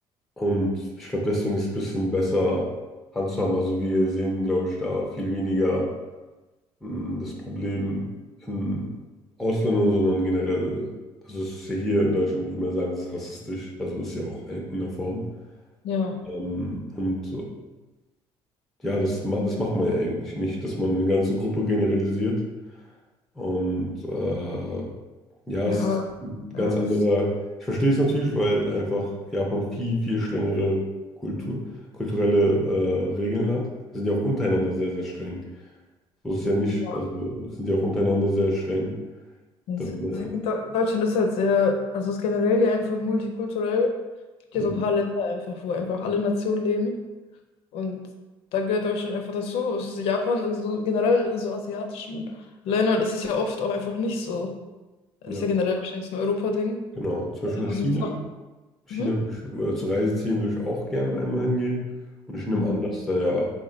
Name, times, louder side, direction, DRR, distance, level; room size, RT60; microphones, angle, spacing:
voice 1, 0.4-2.7 3.1-5.9 6.8-8.1 8.4-8.9 9.4-10.9 11.3-15.2 16.3-17.5 18.8-22.4 23.4-24.9 25.5-25.9 26.2-27.3 27.6-30.8 31.2-31.6 32.0-33.7 33.9-35.4 36.2-39.0 39.8-40.3 44.6-44.8 55.3-55.5 57.0-58.1 58.9-61.8 62.3-63.5, equal, ahead, -2 dB, 0.4 m, -26 dB
voice 2, 15.8-16.2 25.7-26.0 26.5-26.7 36.8-37.0 39.7-43.9 44.5-47.0 47.7-48.0 48.5-52.2 52.6-54.5 55.2-56.8 57.5-58.1 58.9-59.1 62.5-62.8, left 4 dB, 80° left, 4 dB, 0.5 m, -26 dB
3.7 x 2.1 x 3.7 m, 1.1 s
cardioid pair, 155°, 10 cm